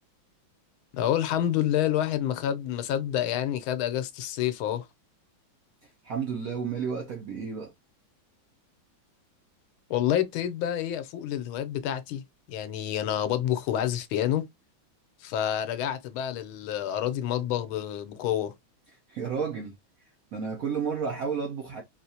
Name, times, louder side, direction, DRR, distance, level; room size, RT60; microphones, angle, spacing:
voice 1, 0.9-4.9 9.9-12.2 12.5-14.4 15.2-18.5, left 11 dB, 85° left, 1.5 m, -28 dB
voice 2, 5.8-7.7 19.1-19.8 20.3-21.8, right 6 dB, 70° right, 0.8 m, -32 dB
3.9 x 2.5 x 2.7 m
omnidirectional pair, 2.2 m